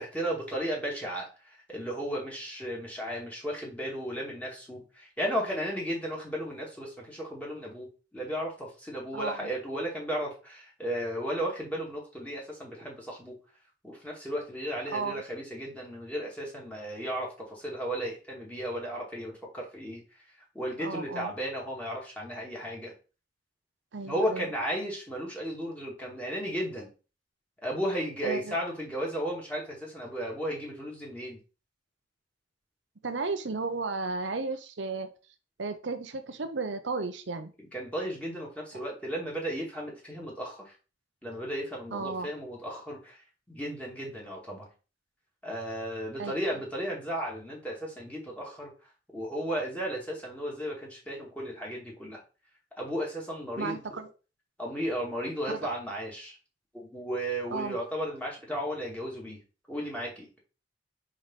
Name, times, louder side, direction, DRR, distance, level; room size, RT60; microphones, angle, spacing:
voice 1, 0.0-13.3 13.8-20.0 20.5-22.9 24.1-26.9 27.6-31.4 37.7-40.7 41.2-44.7 45.4-48.7 49.1-52.2 52.8-53.8 54.6-56.4 56.7-59.4 59.7-60.4, equal, 10° left, -3 dB, 2.6 m, -34 dB
voice 2, 9.1-9.5 14.9-15.2 20.8-21.3 23.9-24.5 28.2-28.6 33.0-35.1 35.6-37.5 41.9-42.3 46.2-46.3 53.6-54.1 55.5-55.6 57.5-57.8, right 4 dB, 70° right, 8 dB, 0.8 m, -34 dB
5.1 x 4.7 x 5.7 m, 0.34 s
head